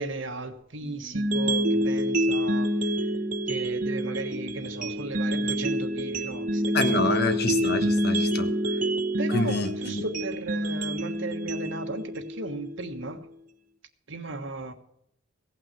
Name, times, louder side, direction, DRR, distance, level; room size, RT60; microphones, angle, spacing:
voice 1, 0.0-3.1 3.5-7.2 9.2-13.3 14.1-14.7, right 2 dB, 70° right, 1.4 m, -36 dB
sound 1, 0.8-10.6, right 1 dB, 20° right, 2.5 m, -46 dB
sound 2, 1.1-13.2, equal, 45° right, 0.9 m, -27 dB
voice 2, 6.7-8.5 9.3-10.0, left 2 dB, 55° left, 1.3 m, -27 dB
17.0 x 5.9 x 7.6 m
head